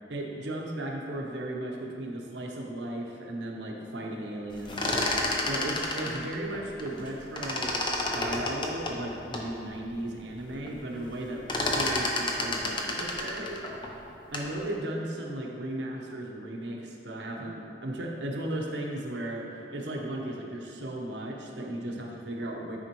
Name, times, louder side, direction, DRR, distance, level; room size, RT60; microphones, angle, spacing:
voice 1, 0.1-13.6 13.9-14.0 14.3-22.8, right 1 dB, 80° right, 0 dB, 0.9 m, -36 dB
sound 1, 4.5-7.1 7.4-9.5 10.0-10.1 10.4-10.8 11.0-14.6, left 2 dB, 30° left, 0.6 m, -30 dB
9.8 x 4.4 x 3.0 m, 2.8 s
head